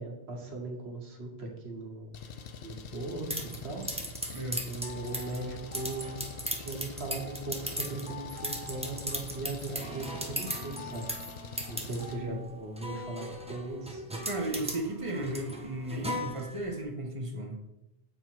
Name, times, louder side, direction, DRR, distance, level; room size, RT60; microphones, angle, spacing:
voice 1, 0.0-2.1 2.6-3.9 4.7-6.2 6.6-11.1 11.7-14.0, right 2 dB, 85° right, 0 dB, 1.4 m, -39 dB
Engine, 2.1-12.2, left 4 dB, 70° left, 0.8 m, -45 dB
sound 1, 3.3-16.8, equal, 10° right, 0.4 m, -38 dB
sound 2, 4.1-10.8, right 1 dB, 65° right, 0.9 m, -57 dB
voice 2, 4.3-4.7 11.8-12.4 14.2-17.6, right 1 dB, 35° right, 1 dB, 0.9 m, -35 dB
7.8 x 2.8 x 4.5 m, 0.95 s
omnidirectional pair, 1.1 m